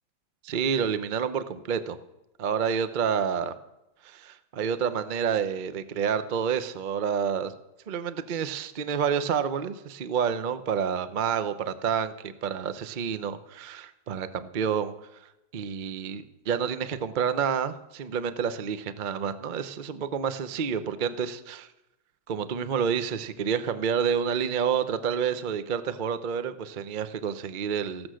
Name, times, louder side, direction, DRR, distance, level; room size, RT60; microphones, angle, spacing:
voice 1, 0.4-2.0 2.4-3.5 4.0-7.5 7.9-14.9 15.5-21.7 22.3-28.1, right 7 dB, 80° right, 11 dB, 0.4 m, -29 dB
15.0 x 12.5 x 6.4 m, 0.93 s
omnidirectional pair, 2.1 m